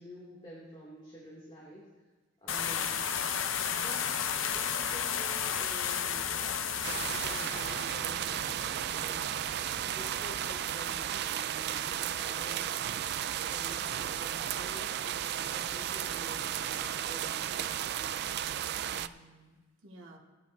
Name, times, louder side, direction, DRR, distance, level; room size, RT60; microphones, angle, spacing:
voice 1, 0.0-2.0 2.4-3.2 3.7-9.3 9.9-18.3, equal, 25° left, -6 dB, 2.5 m, -50 dB
sound 1, 2.5-10.6, left 7 dB, 85° left, 0.7 m, -34 dB
sound 2, 6.8-19.1, right 10 dB, 55° right, 0.3 m, -34 dB
voice 2, 9.0-9.3 18.8-20.2, right 1 dB, 80° right, -1 dB, 1.7 m, -54 dB
18.0 x 11.0 x 2.7 m, 1.3 s
head